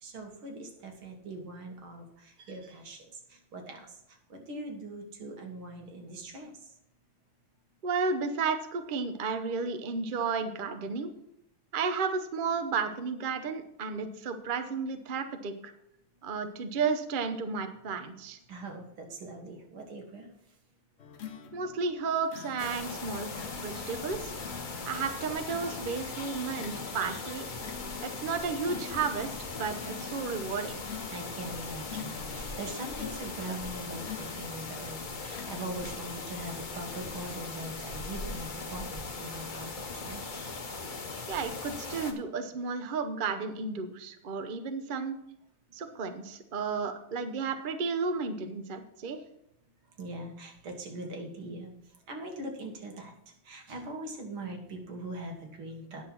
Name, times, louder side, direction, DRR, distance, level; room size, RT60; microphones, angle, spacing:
voice 1, 0.0-3.0 3.3-3.9 4.3-6.5 18.5-20.3 31.1-40.5 50.0-51.7 52.1-53.1 53.5-56.0, right 2 dB, 85° right, 2 dB, 2.5 m, -41 dB
voice 2, 7.8-11.1 11.7-15.7 16.2-18.4 21.5-23.3 23.6-24.3 24.9-27.4 28.0-30.8 41.3-45.2 45.7-49.2, right 5 dB, 65° right, 7 dB, 0.5 m, -33 dB
sound 1, 21.0-34.8 35.3-35.7, left 7 dB, 80° left, 0.5 m, -46 dB
sound 2, 22.6-42.1, left 3 dB, 35° left, 0.8 m, -39 dB
9.7 x 6.5 x 5.9 m, 0.79 s
omnidirectional pair, 2.2 m